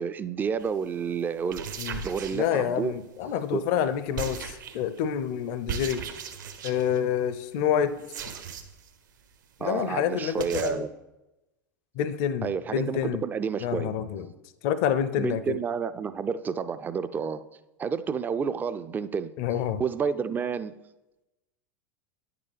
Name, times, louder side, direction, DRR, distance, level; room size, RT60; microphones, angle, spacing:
voice 1, 0.0-1.7 2.0-2.9 3.5-3.6 9.6-10.9 12.4-13.9 15.2-17.4 17.8-19.3 19.8-20.7, right 6 dB, 15° right, 12 dB, 0.3 m, -30 dB
sound 1, 0.6-0.8 1.4-3.0 4.1-5.0 5.7-7.0 8.0-8.9 9.2-9.3 9.6-9.7 9.9-10.0 10.4-10.7, right 7 dB, 65° right, 0.9 m, -37 dB
voice 2, 2.3-6.0 6.6-8.0 9.6-10.9 12.0-13.2 13.6-14.3 14.6-15.6 19.4-19.8, left 9 dB, 45° left, 13 dB, 0.5 m, -28 dB
9.7 x 6.7 x 3.4 m, 1.0 s
figure-of-eight pair, 85°, 11 cm